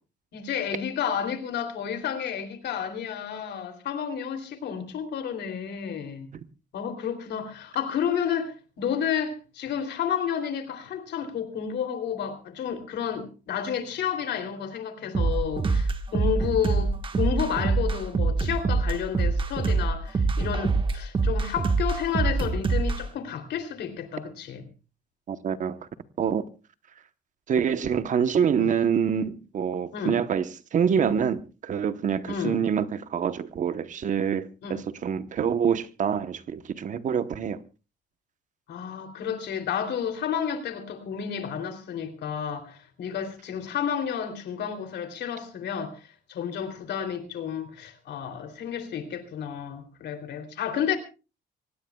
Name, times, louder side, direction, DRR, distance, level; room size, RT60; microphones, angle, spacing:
voice 1, 0.3-6.3 6.7-24.6 28.6-28.7 29.9-30.2 32.3-32.6 34.6-34.8 38.7-51.0, left 8 dB, 70° left, 3.1 m, -31 dB
sound 1, 15.1-23.0, right 4 dB, 30° right, 1.4 m, -24 dB
voice 2, 25.3-25.8 26.2-26.4 27.5-37.6, right 7 dB, 45° right, 0.9 m, -26 dB
25.5 x 18.0 x 2.3 m
cardioid pair, 160°, 18 cm